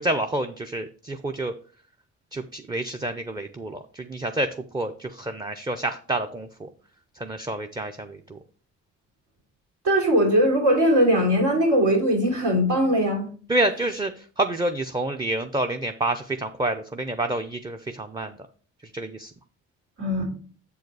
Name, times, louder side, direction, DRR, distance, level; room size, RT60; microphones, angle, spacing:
voice 1, 0.0-1.5 2.3-4.5 4.7-6.7 7.2-8.4 13.5-18.4 18.9-19.3, right 2 dB, 15° right, 6 dB, 0.5 m, -28 dB
voice 2, 9.8-13.3 20.0-20.2, equal, 90° right, -1 dB, 3.3 m, -20 dB
7.5 x 4.7 x 4.7 m, 0.44 s
cardioid pair, 90°, 30 cm